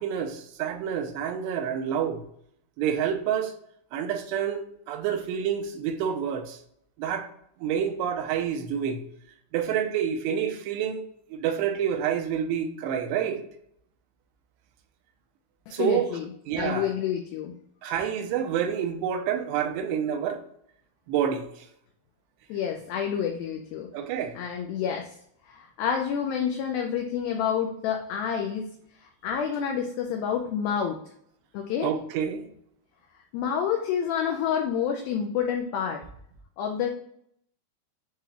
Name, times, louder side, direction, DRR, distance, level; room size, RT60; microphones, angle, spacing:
voice 1, 0.0-2.2 2.8-3.5 3.9-6.6 7.0-7.3 7.6-9.0 9.5-11.0 11.3-13.5 15.7-16.1 16.5-16.9 17.8-20.4 21.1-21.5 23.9-24.3 31.8-32.5, right 8 dB, 85° right, 2.8 m, -28 dB
voice 2, 15.7-16.3 16.6-17.5 22.5-23.9 24.4-25.1 25.5-28.7 29.2-31.0 31.5-31.9 33.3-36.0 36.6-36.9, left 8 dB, 90° left, 2.1 m, -28 dB
7.7 x 2.8 x 2.3 m
omnidirectional pair, 4.8 m